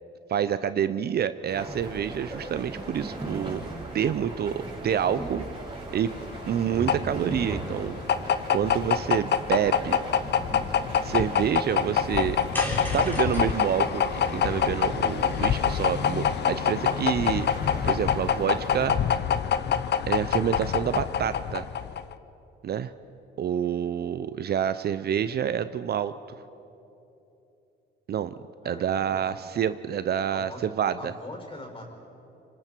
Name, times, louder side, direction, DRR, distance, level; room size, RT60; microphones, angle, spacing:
voice 1, 0.3-3.6 3.9-5.4 5.9-6.1 6.5-8.0 8.5-10.0 11.0-12.4 12.9-17.5 17.8-19.0 20.1-21.7 22.6-22.9 23.4-26.1 28.1-28.3 28.6-31.1, right 9 dB, 50° right, 13 dB, 0.6 m, -28 dB
sound 1, 1.5-18.9, right 2 dB, 25° right, 6.1 m, -38 dB
sound 2, 6.1-22.1, left 8 dB, 55° left, 0.8 m, -26 dB
sound 3, 12.5-16.9, equal, 10° left, 3.9 m, -38 dB
voice 2, 28.6-29.5 30.3-30.7 31.0-31.8, left 1 dB, 25° left, 1 dB, 5.8 m, -42 dB
26.0 x 25.5 x 4.5 m, 2.9 s
cardioid pair, 85°, 21 cm